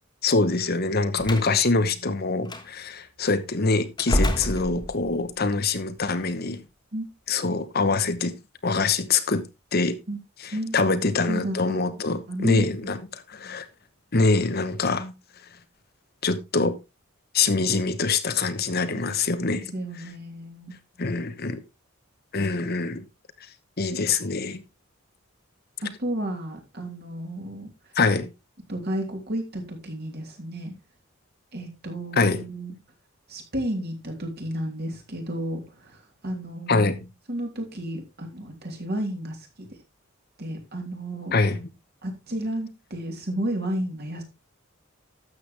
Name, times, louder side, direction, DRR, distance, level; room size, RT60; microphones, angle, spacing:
voice 1, 0.2-6.6 7.3-8.3 8.6-9.4 9.7-10.0 10.4-13.7 14.1-15.1 16.2-16.8 17.3-19.7 21.0-21.6 22.3-23.1 23.8-24.6 27.9-28.3 32.2-32.4 36.7-37.1 41.3-41.7, left 3 dB, 50° left, 1.0 m, -24 dB
Slam, 1.2-1.5 2.5-2.6 4.0-5.3, equal, 20° left, 1.5 m, -26 dB
voice 2, 10.5-11.0 11.3-11.8 12.3-12.9 19.5-20.7 26.0-27.7 28.7-30.7 31.5-32.7 33.3-36.9 37.3-39.7 40.4-41.4 42.0-44.2, right 1 dB, 50° right, 3.5 m, -32 dB
12.5 x 7.8 x 3.3 m
head